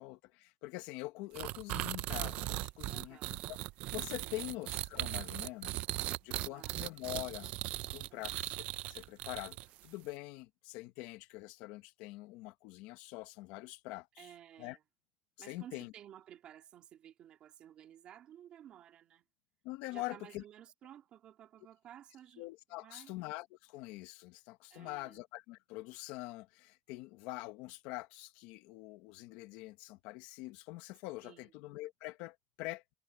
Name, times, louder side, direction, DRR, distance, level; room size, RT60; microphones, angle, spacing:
voice 1, 0.0-3.6 3.9-5.8 6.2-7.5 7.9-8.6 8.9-9.6 9.8-14.3 14.6-14.8 15.5-15.9 19.6-20.4 22.4-32.8, left 19 dB, 85° left, 1.2 m, -44 dB
sound 1, 1.3-9.8, right 18 dB, 65° right, 0.5 m, -39 dB
voice 2, 2.9-3.4 4.2-4.4 6.5-6.9 8.1-8.4 14.2-14.8 15.4-19.3 19.9-23.1 24.7-25.2 31.2-31.5, right 11 dB, 45° right, 3.0 m, -55 dB
cardioid pair, 160°, 3 cm